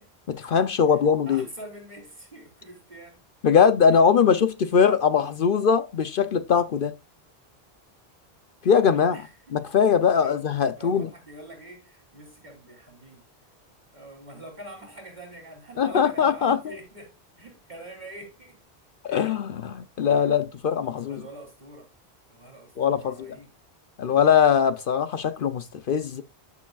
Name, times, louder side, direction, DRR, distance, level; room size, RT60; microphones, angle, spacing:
voice 1, 0.3-1.4 3.4-6.9 8.6-9.2 9.5-11.1 15.8-16.6 19.0-21.2 22.8-23.4 24.0-26.2, left 7 dB, 60° left, 0.8 m, -21 dB
voice 2, 1.2-3.2 3.9-4.0 9.1-9.4 10.2-10.4 10.7-13.2 13.9-18.6 19.1-19.4 20.7-21.9 22.3-23.5, right 1 dB, 45° right, 3.6 m, -45 dB
13.0 x 6.9 x 2.3 m
omnidirectional pair, 1.1 m